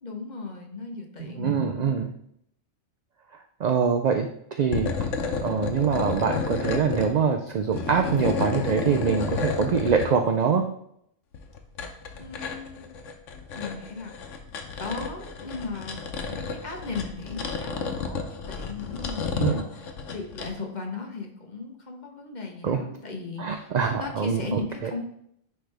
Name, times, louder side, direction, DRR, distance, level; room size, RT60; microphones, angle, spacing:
voice 1, 0.0-1.7 12.2-12.8 13.5-14.1 14.8-16.0 16.3-25.0, left 4 dB, 40° left, 2 dB, 1.1 m, -37 dB
voice 2, 1.4-2.1 3.6-4.9 5.4-10.6 19.4-19.6 22.6-22.8 23.4-24.9, right 6 dB, 65° right, 4 dB, 0.4 m, -24 dB
sound 1, 4.6-7.1 7.5-10.1 11.3-20.5, left 5 dB, 80° left, 1.1 m, -31 dB
9.9 x 3.3 x 3.4 m, 0.71 s
omnidirectional pair, 1.3 m